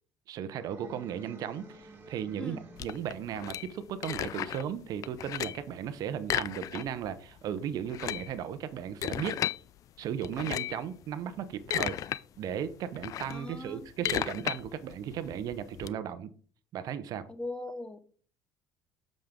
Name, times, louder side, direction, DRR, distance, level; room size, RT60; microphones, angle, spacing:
voice 1, 0.3-9.4 10.0-12.0 12.4-16.3 16.7-17.3, right 9 dB, 55° right, 0.8 m, -36 dB
sound 1, 0.5-3.4, right 2 dB, 25° right, 2.4 m, -51 dB
sound 2, 2.8-4.7 5.0-5.7 6.2-7.1 7.4-7.5 7.8-9.6 10.2-10.9 11.4-12.2 12.6-15.9, left 11 dB, 50° left, 0.3 m, -34 dB
voice 2, 13.3-14.1 17.3-18.0, left 2 dB, 15° left, 0.8 m, -40 dB
7.8 x 5.1 x 3.7 m
cardioid pair, 110°, 7 cm